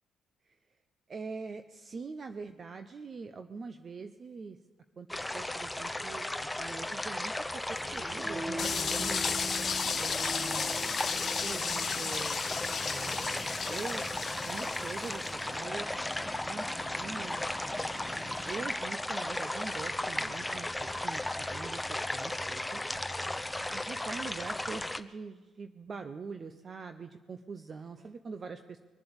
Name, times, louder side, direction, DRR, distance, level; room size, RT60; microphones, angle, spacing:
voice 1, 1.1-4.6 5.0-5.1 5.3-9.2 10.0-11.0 11.4-12.4 12.8-14.1 14.5-15.9 16.5-17.4 18.5-22.9 23.7-28.8, right 4 dB, 40° right, 9 dB, 0.7 m, -43 dB
sound 1, 5.1-25.0, left 1 dB, 5° left, 0.7 m, -35 dB
sound 2, 7.8-18.7, right 1 dB, 10° right, 1.9 m, -44 dB
sound 3, 8.6-15.4, left 6 dB, 50° left, 1.1 m, -34 dB
23.0 x 7.7 x 7.1 m, 1.3 s
cardioid pair, 90°, 0 cm